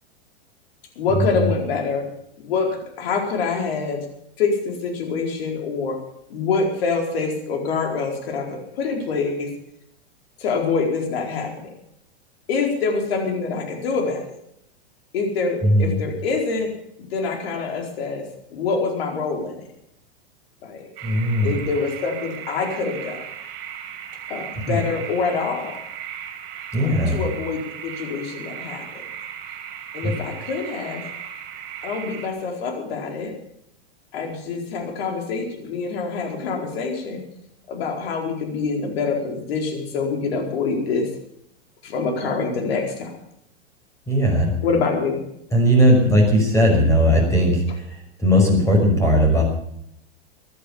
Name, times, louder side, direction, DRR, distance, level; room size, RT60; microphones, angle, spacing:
voice 1, 1.0-2.0 2.4-4.0 4.4-6.0 6.3-9.5 10.4-11.7 12.5-14.2 15.1-16.7 17.0-18.2 18.5-19.6 20.6-20.9 21.4-23.2 24.3-25.8 26.8-29.1 29.9-31.0 31.8-33.3 34.1-37.2 37.7-41.0 41.8-43.2 44.6-45.2, left 4 dB, 70° left, 3 dB, 4.5 m, -25 dB
voice 2, 15.6-16.0 21.0-21.5 24.7-24.8 26.7-27.2 30.0-30.1 44.1-44.5 45.5-47.8 48.2-49.4, equal, 10° left, 1 dB, 6.0 m, -17 dB
sound 1, 21.0-32.3, right 9 dB, 55° right, 3.3 m, -36 dB
15.5 x 11.5 x 7.0 m, 0.74 s
hypercardioid pair, 120°, 32 cm